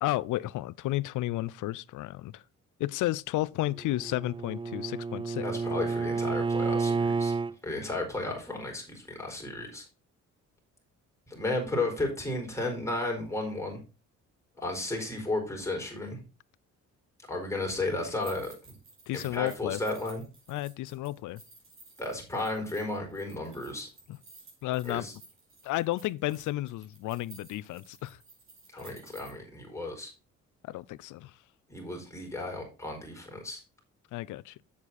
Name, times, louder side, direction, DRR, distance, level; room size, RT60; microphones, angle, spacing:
voice 1, 0.0-2.4 2.8-5.4 19.1-19.8 20.5-21.4 24.6-25.1 25.6-28.2 30.6-31.3 34.1-34.6, left 16 dB, 80° left, 0.5 m, -32 dB
Bowed string instrument, 3.7-7.5, right 4 dB, 15° right, 0.3 m, -30 dB
voice 2, 5.4-7.3 7.6-9.8 11.3-13.8 14.6-16.2 17.3-18.7 19.1-20.2 22.0-23.9 24.8-25.1 28.7-30.1 31.7-33.6, left 2 dB, 10° left, 4.6 m, -33 dB
sound 1, 18.0-29.3, right 3 dB, 45° right, 5.2 m, -54 dB
8.4 x 7.3 x 4.2 m
cardioid pair, 90°, 30 cm